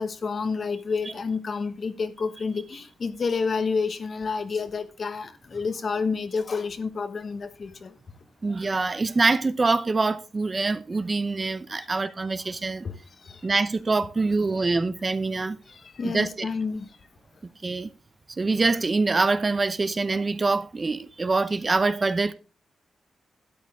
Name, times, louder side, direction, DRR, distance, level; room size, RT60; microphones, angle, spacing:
voice 1, 0.0-7.9 11.8-11.9 12.8-13.0 13.2-13.4 15.7-16.9, left 5 dB, 50° left, 1.2 m, -29 dB
voice 2, 8.4-12.8 13.4-15.6 16.0-16.5 17.6-17.9 18.4-22.3, right 3 dB, 30° right, 0.7 m, -24 dB
12.5 x 9.4 x 3.6 m
cardioid pair, 105°, 0 cm